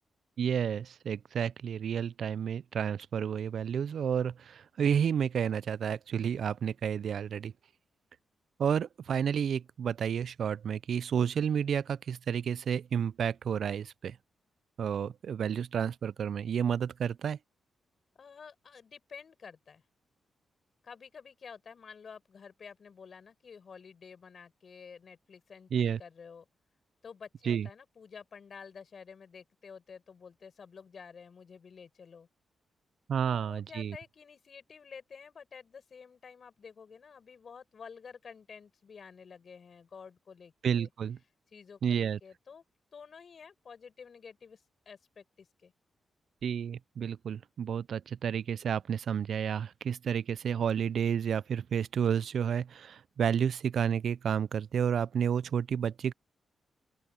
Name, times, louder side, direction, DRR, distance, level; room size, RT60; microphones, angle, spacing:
voice 1, 0.4-7.5 8.6-14.2 14.8-17.4 25.7-26.0 27.4-27.7 33.1-34.0 40.6-41.2 41.8-42.2 46.4-56.1, right 8 dB, 70° right, 0.3 m, -31 dB
voice 2, 18.2-19.8 20.8-26.5 27.0-32.3 33.2-40.9 41.5-42.6 42.9-45.7, left 6 dB, 55° left, 6.2 m, -50 dB
open air
cardioid pair, 85°, 0 cm